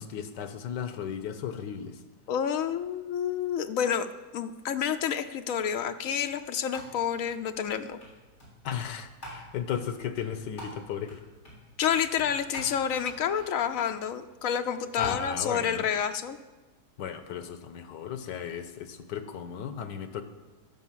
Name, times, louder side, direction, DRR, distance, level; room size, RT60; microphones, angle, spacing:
voice 1, 0.0-1.9 8.6-11.1 15.0-15.8 17.0-20.2, left 8 dB, 80° left, 10 dB, 1.5 m, -35 dB
voice 2, 2.3-4.1 4.3-8.0 11.8-16.4, left 8 dB, 65° left, 8 dB, 0.9 m, -29 dB
sound 1, 5.4-15.1, equal, 40° left, 4.2 m, -50 dB
13.0 x 6.1 x 7.4 m, 1.2 s
omnidirectional pair, 1.8 m